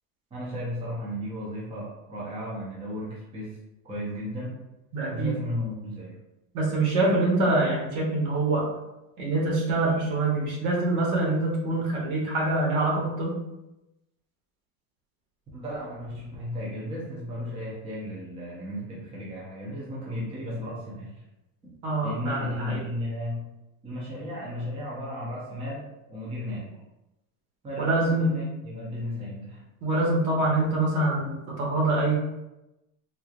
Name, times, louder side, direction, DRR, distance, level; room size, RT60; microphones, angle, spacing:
voice 1, 0.3-3.6 3.8-4.6 5.1-6.2 15.5-21.2 21.6-21.7 22.0-23.5 23.8-26.8 27.6-29.6, left 1 dB, 10° right, -6 dB, 0.7 m, -34 dB
voice 2, 4.9-5.3 6.5-8.7 9.2-13.3 21.8-22.8 27.8-28.3 29.8-32.2, right 2 dB, 70° right, -2 dB, 1.3 m, -25 dB
3.7 x 2.9 x 2.4 m, 0.94 s
cardioid pair, 160°, 47 cm